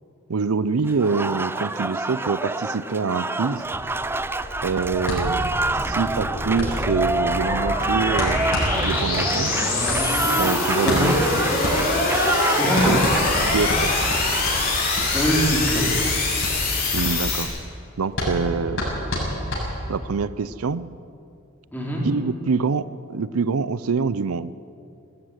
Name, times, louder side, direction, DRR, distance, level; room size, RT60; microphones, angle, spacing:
voice 1, 0.3-3.6 4.6-5.5 5.9-8.5 8.8-9.5 10.4-11.2 12.6-13.0 13.5-13.9 16.9-17.5 18.0-18.8 19.9-20.9 22.0-24.5, right 5 dB, 85° right, 16 dB, 0.5 m, -25 dB
Applause, 0.9-14.5, right 2 dB, 10° right, 0.4 m, -27 dB
sound 1, 3.9-17.4, left 2 dB, 45° left, 4.6 m, -24 dB
sound 2, 5.1-20.2, equal, 60° left, 7.1 m, -29 dB
voice 2, 10.8-11.1 12.4-13.0 15.1-15.9 21.7-22.0, equal, 10° left, -4 dB, 4.5 m, -23 dB
19.5 x 14.0 x 9.7 m, 2.6 s
head